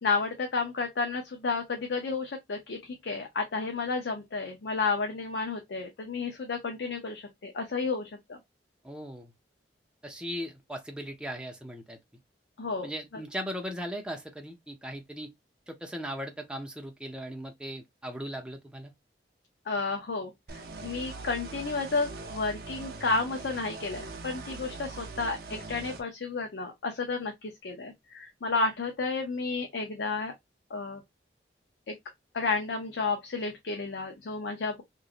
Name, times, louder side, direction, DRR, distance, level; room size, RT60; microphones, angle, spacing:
voice 1, 0.0-8.4 12.6-13.2 19.7-30.3 30.7-31.0 31.9-32.0 32.3-34.8, left 4 dB, 80° left, 0.6 m, -32 dB
voice 2, 8.8-9.3 10.0-12.0 12.8-15.3 15.7-18.9, equal, 5° right, 0.6 m, -38 dB
sound 1, 20.5-26.0, right 3 dB, 55° right, 0.6 m, -42 dB
3.0 x 2.5 x 2.4 m
head